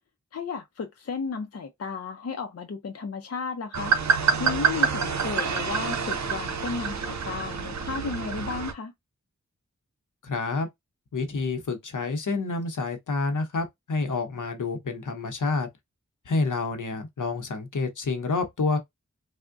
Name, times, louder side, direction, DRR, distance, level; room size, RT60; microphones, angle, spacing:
voice 1, 0.3-8.9, left 5 dB, 55° left, 0.5 m, -34 dB
sound 1, 3.7-8.7, right 6 dB, 65° right, 0.6 m, -27 dB
voice 2, 10.2-10.7 11.1-15.7 16.3-18.8, left 3 dB, 90° left, 0.7 m, -28 dB
3.4 x 2.1 x 2.5 m
wide cardioid pair, 70°, 30 cm